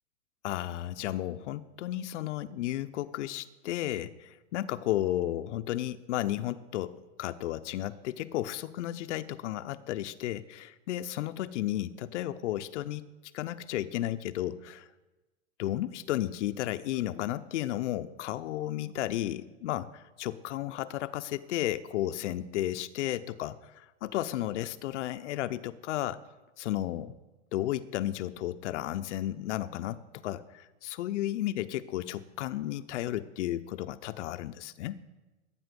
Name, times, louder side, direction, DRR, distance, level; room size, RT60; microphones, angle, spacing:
voice 1, 0.4-13.0 13.3-14.9 15.6-26.2 26.6-27.1 27.5-35.0, left 13 dB, 75° left, 11 dB, 0.6 m, -33 dB
12.5 x 8.7 x 5.2 m, 1.1 s
hypercardioid pair, 140°, 36 cm